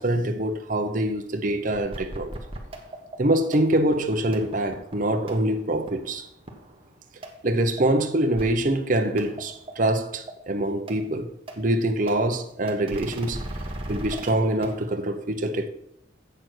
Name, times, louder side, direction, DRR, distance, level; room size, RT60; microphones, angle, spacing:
voice 1, 0.0-2.4 3.2-6.3 7.4-11.3 11.6-13.4 13.9-15.7, right 1 dB, 45° right, 0.8 m, -24 dB
sound 1, 1.7-6.9 7.2-7.3 7.8-7.9 8.4-8.8 9.2-9.7 10.3-10.4 10.9-11.0 11.5-11.6 12.1-12.2 12.7-15.1, right 1 dB, 30° right, 1.2 m, -38 dB
7.9 x 6.8 x 6.1 m
head